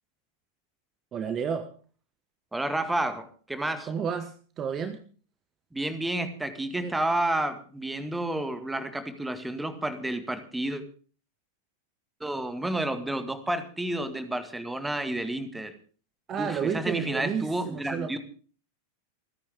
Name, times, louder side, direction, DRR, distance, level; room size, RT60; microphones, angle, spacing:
voice 1, 1.1-1.7 3.9-5.0 6.8-6.9 16.3-18.1, right 7 dB, 25° right, 10 dB, 1.3 m, -31 dB
voice 2, 2.5-3.9 5.7-10.8 12.2-15.7 16.4-18.2, right 1 dB, 5° right, 10 dB, 1.9 m, -30 dB
28.0 x 10.0 x 3.6 m, 0.41 s
figure-of-eight pair, 90°, 0 cm